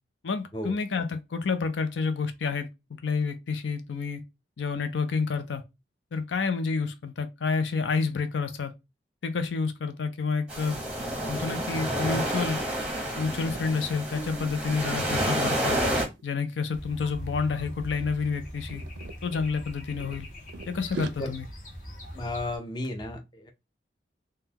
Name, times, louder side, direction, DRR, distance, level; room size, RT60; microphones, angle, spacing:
voice 1, 0.2-2.7 3.0-4.2 4.6-5.6 6.1-8.7 9.2-10.8 11.3-12.6 13.2-15.8 16.2-18.8 19.2-20.3 20.7-21.5, left 5 dB, 85° left, 0.5 m, -29 dB
sound 1, 10.5-16.1, right 1 dB, 5° right, 0.8 m, -29 dB
sound 2, 13.5-13.7 14.0-14.3 14.6-16.4 17.1-17.4 17.7-19.5 20.0-21.1, right 4 dB, 85° right, 0.4 m, -42 dB
sound 3, 16.7-22.6, equal, 45° left, 0.9 m, -41 dB
voice 2, 22.1-23.5, left 1 dB, 25° left, 0.5 m, -33 dB
3.7 x 2.2 x 2.8 m
head